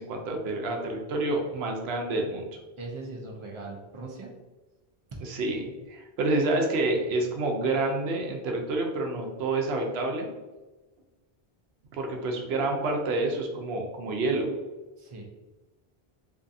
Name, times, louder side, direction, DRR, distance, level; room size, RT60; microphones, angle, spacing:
voice 1, 0.0-2.4 5.2-10.3 11.9-14.5, right 2 dB, 80° right, 2 dB, 0.8 m, -28 dB
voice 2, 2.8-4.3 5.1-5.2 15.0-15.2, right 3 dB, 55° right, -1 dB, 0.3 m, -39 dB
2.6 x 2.3 x 2.5 m, 1.2 s
omnidirectional pair, 1.1 m